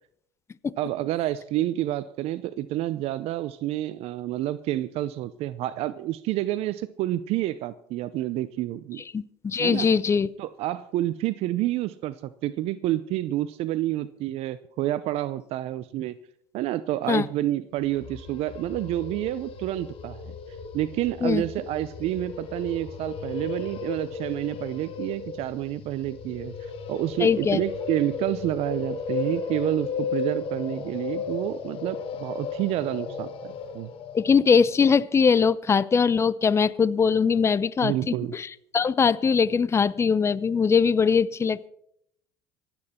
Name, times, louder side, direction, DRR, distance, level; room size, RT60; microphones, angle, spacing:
voice 1, 0.8-9.0 9.6-9.9 10.4-16.2 16.5-20.3 20.7-26.5 26.9-33.9 37.8-38.3, right 14 dB, 65° right, 15 dB, 0.6 m, -29 dB
voice 2, 9.1-10.3 17.1-17.3 21.2-21.4 27.2-27.6 34.1-41.7, left 6 dB, 25° left, 19 dB, 0.6 m, -21 dB
sound 1, 17.8-34.8, left 5 dB, 55° left, 1.8 m, -35 dB
26.0 x 8.9 x 4.3 m, 0.73 s
supercardioid pair, 85°, 11 cm